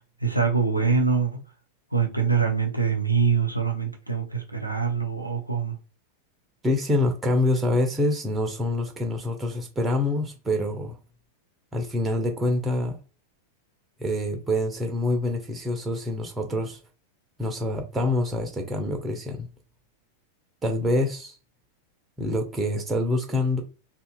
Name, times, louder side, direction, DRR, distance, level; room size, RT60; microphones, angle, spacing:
voice 1, 0.2-1.4 1.9-5.8, right 5 dB, 90° left, 0.6 m, -24 dB
voice 2, 6.6-11.0 11.7-13.0 14.0-16.8 17.4-19.5 20.6-21.4 22.2-23.6, left 1 dB, 15° right, 0.7 m, -26 dB
2.7 x 2.4 x 2.3 m
figure-of-eight pair, 90°, 0 cm